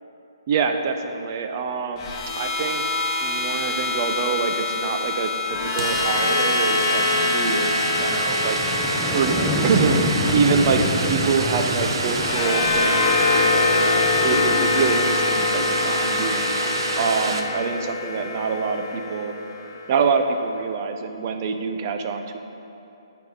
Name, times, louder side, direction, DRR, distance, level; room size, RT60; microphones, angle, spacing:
voice 1, 0.5-2.8 3.2-8.6 9.1-9.4 9.6-13.9 14.2-16.5 17.0-19.3 19.9-22.4, right 5 dB, 35° right, 6 dB, 0.7 m, -25 dB
sound 1, 2.0-20.1, left 3 dB, 25° left, 1.3 m, -25 dB
sound 2, 3.7-3.8 4.0-17.4, right 3 dB, 70° right, 1.1 m, -28 dB
sound 3, 6.8-17.4, left 1 dB, ahead, 0.8 m, -29 dB
13.0 x 4.8 x 5.5 m, 2.9 s
hypercardioid pair, 150°, 3 cm